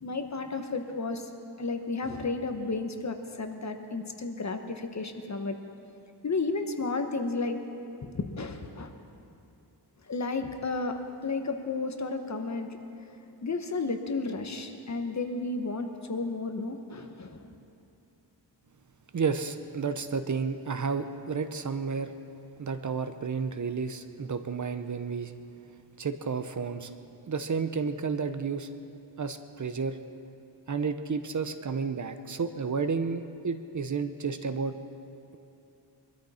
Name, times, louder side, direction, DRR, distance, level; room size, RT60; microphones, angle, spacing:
voice 1, 0.0-1.3 1.6-5.6 6.2-7.6 8.0-8.9 10.1-12.8 13.4-17.5, left 3 dB, 40° left, 6 dB, 1.2 m, -32 dB
voice 2, 19.1-22.1 22.6-25.3 26.0-27.0 27.2-28.7 29.2-30.0 30.7-34.8, right 5 dB, 45° right, 10 dB, 0.8 m, -31 dB
22.5 x 13.0 x 4.3 m, 2.9 s
wide cardioid pair, 105°, 42 cm